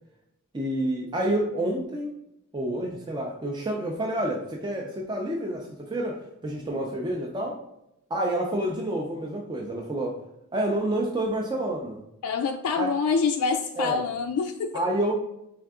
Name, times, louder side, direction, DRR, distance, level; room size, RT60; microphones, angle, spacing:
voice 1, 0.5-2.1 2.5-7.6 8.1-10.2 10.5-12.0 12.8-12.9 13.8-14.0 14.7-15.1, right 1 dB, 20° right, 0 dB, 0.4 m, -28 dB
voice 2, 12.2-14.7, left 5 dB, 75° left, 5 dB, 0.3 m, -26 dB
3.7 x 3.4 x 3.5 m, 0.83 s
head